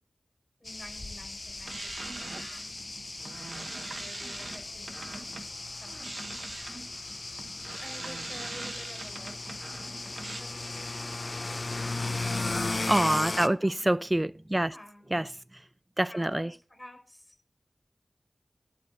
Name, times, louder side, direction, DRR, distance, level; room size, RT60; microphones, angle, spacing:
voice 1, 0.6-2.2 2.5-2.8 3.6-5.4 5.8-6.4 7.8-9.4 10.4-11.2 13.2-13.8 14.5-15.1 16.1-17.4, left 1 dB, 30° left, 5.4 m, -50 dB
sound 1, 0.7-13.5, left 2 dB, 55° left, 0.5 m, -36 dB
sound 2, 1.6-5.5 5.9-10.4, right 2 dB, 70° right, 1.0 m, -42 dB
voice 2, 12.9-14.7 15.1-15.3 16.0-16.5, right 1 dB, 25° right, 0.4 m, -26 dB
11.5 x 4.3 x 8.1 m
wide cardioid pair, 45°, 0 cm